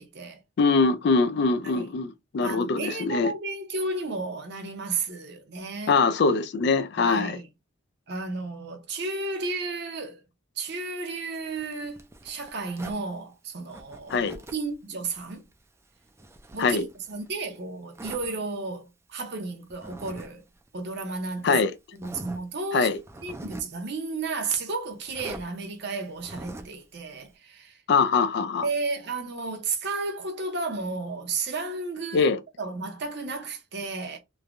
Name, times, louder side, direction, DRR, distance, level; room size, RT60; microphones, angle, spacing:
voice 1, 0.0-0.4 1.6-1.9 2.4-5.9 7.0-7.5 8.1-10.2 10.6-14.3 14.5-15.4 16.5-20.4 20.7-21.6 21.9-22.9 23.2-27.8 28.6-32.3 32.6-34.2, right 3 dB, 60° right, 0.7 m, -33 dB
voice 2, 0.6-3.3 5.9-7.4 14.1-14.4 16.6-16.8 21.4-21.7 22.7-23.0 27.9-28.7 32.1-32.4, left 4 dB, 60° left, 0.4 m, -23 dB
Zipper (clothing), 11.3-13.0 13.7-14.7 15.1-17.3 17.9-18.3 19.7-20.3 20.6-20.7 21.4-21.5 21.9-22.4 22.9-23.8 25.1-25.5 26.1-26.8, right 1 dB, 15° right, 0.4 m, -43 dB
3.1 x 2.2 x 2.5 m
head